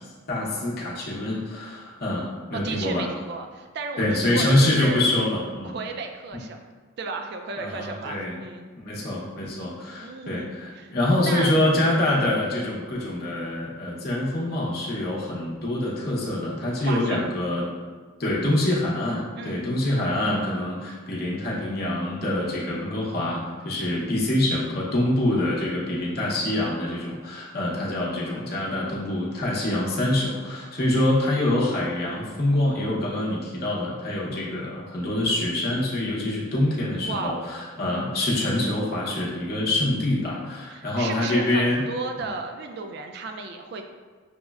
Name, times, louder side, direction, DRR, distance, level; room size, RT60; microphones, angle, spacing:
voice 1, 0.3-3.1 4.0-5.7 7.6-8.4 8.8-17.7 18.2-41.8, left 1 dB, 50° left, -5 dB, 0.7 m, -25 dB
voice 2, 2.5-5.1 5.6-6.6 7.0-8.7 10.0-10.9 11.2-11.5 16.8-17.3 19.4-19.7 37.0-37.5 40.7-43.8, right 4 dB, 50° right, 4 dB, 0.3 m, -34 dB
6.1 x 2.1 x 2.3 m, 1.5 s
head